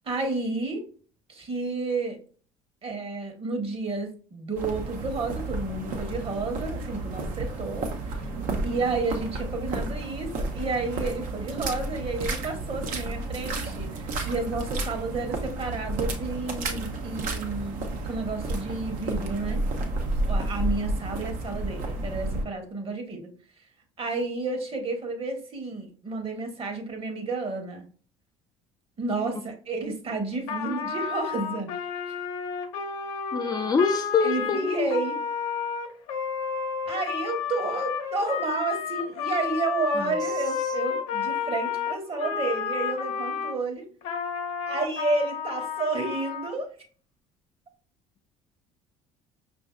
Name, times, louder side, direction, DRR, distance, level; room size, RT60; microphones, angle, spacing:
voice 1, 0.0-0.9 1.3-2.2 2.8-7.9 8.6-19.6 20.3-23.3 24.0-27.8 29.0-31.7 34.2-35.2 36.9-43.8 44.7-46.7, right 3 dB, 35° right, 1.1 m, -31 dB
sound 1, 4.5-22.4, right 2 dB, 60° right, 0.8 m, -31 dB
Trumpet, 30.5-43.6 44.0-46.6, left 6 dB, 70° left, 0.8 m, -31 dB
voice 2, 33.3-35.0 40.0-40.2 40.6-40.7, left 5 dB, 25° left, 0.4 m, -25 dB
5.3 x 2.6 x 2.3 m
hypercardioid pair, 60°, 16 cm